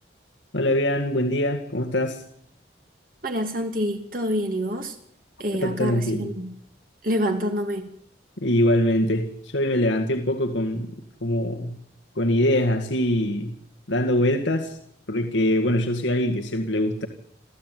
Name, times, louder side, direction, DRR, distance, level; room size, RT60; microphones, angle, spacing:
voice 1, 0.5-2.2 5.6-6.3 8.4-10.9 11.2-11.8 12.2-13.5 13.9-14.8 15.1-17.1, left 1 dB, 90° left, 4 dB, 2.0 m, -23 dB
voice 2, 3.2-5.0 5.4-6.5 7.0-7.9, equal, 50° right, 5 dB, 2.6 m, -27 dB
28.0 x 14.5 x 9.3 m, 0.70 s
head